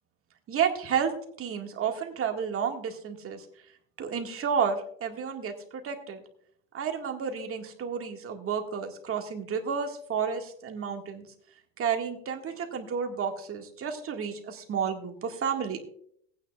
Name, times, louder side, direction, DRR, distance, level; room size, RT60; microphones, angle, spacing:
voice 1, 0.5-3.4 4.0-6.2 6.7-11.2 11.8-15.8, right 7 dB, 30° right, 4 dB, 2.0 m, -31 dB
18.5 x 9.4 x 2.4 m, 0.66 s
supercardioid pair, 115°, 41 cm